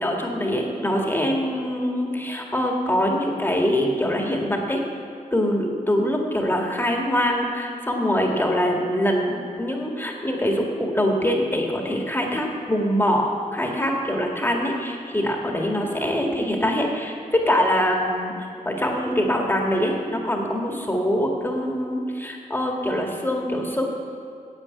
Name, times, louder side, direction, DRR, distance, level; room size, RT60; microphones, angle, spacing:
voice 1, 0.0-4.8 5.3-18.3 18.7-23.9, equal, 15° left, 0 dB, 1.8 m, -24 dB
9.8 x 8.4 x 8.5 m, 2.4 s
wide cardioid pair, 90°, 14 cm